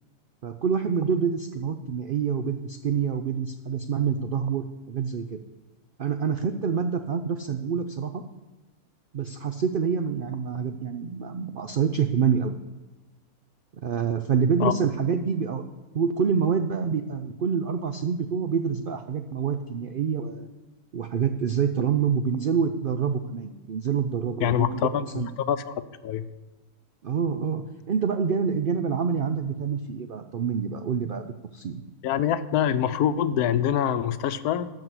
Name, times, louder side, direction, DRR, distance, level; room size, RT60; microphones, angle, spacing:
voice 1, 0.4-5.4 6.0-8.2 9.1-12.5 13.8-15.6 15.9-20.5 20.9-24.9 25.1-25.3 27.0-31.8, right 6 dB, 75° right, 8 dB, 0.4 m, -27 dB
voice 2, 24.4-25.7 26.0-26.2 32.0-34.7, left 9 dB, 80° left, 13 dB, 1.1 m, -25 dB
14.0 x 4.9 x 7.7 m, 1.2 s
omnidirectional pair, 1.6 m